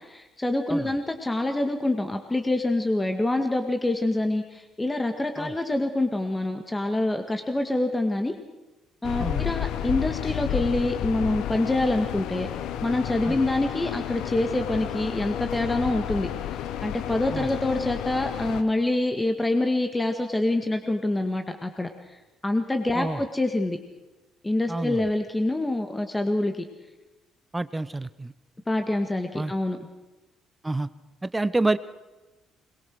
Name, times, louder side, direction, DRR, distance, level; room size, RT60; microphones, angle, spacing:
voice 1, 0.0-8.3 9.0-12.5 12.8-16.3 16.8-21.9 22.4-23.8 24.4-26.7 28.7-29.8, left 2 dB, 15° left, 5 dB, 2.0 m, -26 dB
sound 1, 9.0-18.6, left 11 dB, 70° left, 1.0 m, -31 dB
voice 2, 24.7-25.1 27.5-28.3 29.3-29.5 30.6-30.9 31.2-31.8, right 2 dB, 15° right, 15 dB, 0.9 m, -28 dB
22.0 x 21.5 x 6.4 m, 1.1 s
hypercardioid pair, 50°, 0 cm